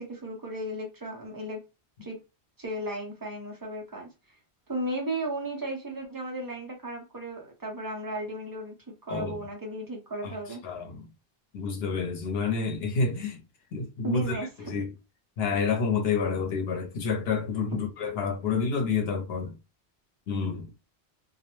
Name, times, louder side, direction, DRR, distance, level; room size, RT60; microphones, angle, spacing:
voice 1, 0.0-1.6 2.0-2.2 2.6-4.4 4.7-8.7 9.0-10.6 14.0-14.7, right 1 dB, 25° right, 0.6 m, -35 dB
voice 2, 10.6-11.1 11.5-13.4 13.7-14.4 14.7-14.9 15.4-19.6 20.3-20.7, left 5 dB, 75° left, 0.8 m, -29 dB
2.3 x 2.0 x 2.9 m
omnidirectional pair, 1.1 m